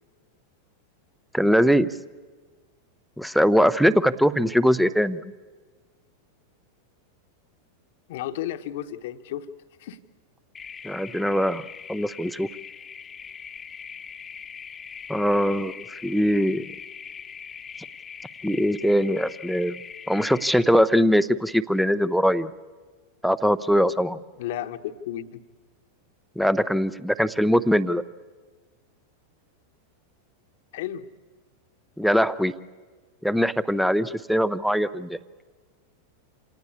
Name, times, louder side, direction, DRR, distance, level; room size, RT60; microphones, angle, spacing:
voice 1, 1.3-1.9 3.2-5.2 10.8-11.6 11.9-12.5 15.1-16.7 18.4-19.8 20.1-22.5 23.2-24.2 26.4-28.0 32.0-32.5 33.2-35.2, equal, ahead, 16 dB, 0.7 m, -21 dB
voice 2, 8.1-9.5 9.8-10.0 24.4-25.4 30.7-31.1, left 12 dB, 55° left, 9 dB, 1.1 m, -33 dB
sound 1, 10.5-20.6, left 7 dB, 20° left, 1.1 m, -41 dB
27.0 x 18.5 x 8.4 m, 1.4 s
figure-of-eight pair, 90°, 0 cm